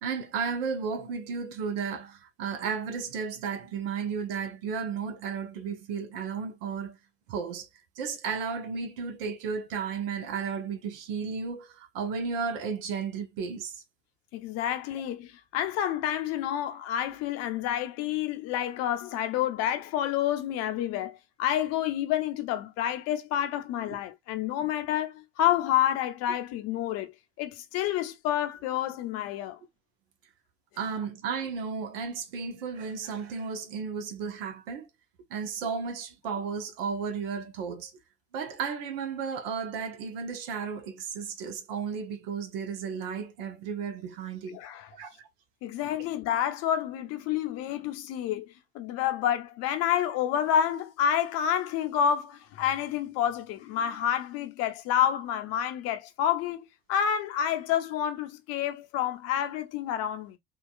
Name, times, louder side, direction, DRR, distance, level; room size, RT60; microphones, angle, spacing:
voice 1, 0.0-7.0 7.3-7.7 8.0-13.8 23.9-24.0 30.8-34.9 35.3-37.9 38.3-44.6 44.9-45.2, right 6 dB, 60° right, 0.8 m, -34 dB
voice 2, 14.3-27.1 27.4-29.6 44.5-44.9 45.6-60.4, left 10 dB, 50° left, 0.7 m, -29 dB
3.8 x 2.3 x 2.3 m
figure-of-eight pair, 65°, 33 cm